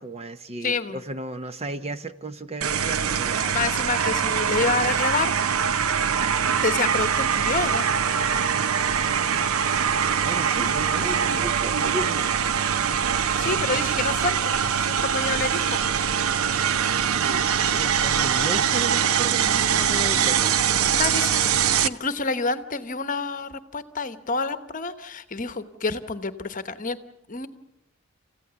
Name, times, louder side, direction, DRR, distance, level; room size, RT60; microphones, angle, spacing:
voice 1, 0.0-3.5 10.2-12.4 17.2-21.0, right 2 dB, 30° right, 11 dB, 0.7 m, -34 dB
voice 2, 0.6-1.0 3.5-5.4 6.6-7.9 13.3-15.8 20.1-20.5 20.9-27.0 27.3-27.5, left 4 dB, 35° left, 11 dB, 1.0 m, -28 dB
sound 1, 2.6-21.9, right 7 dB, 80° right, 0.7 m, -23 dB
29.0 x 15.5 x 6.9 m, 0.90 s
head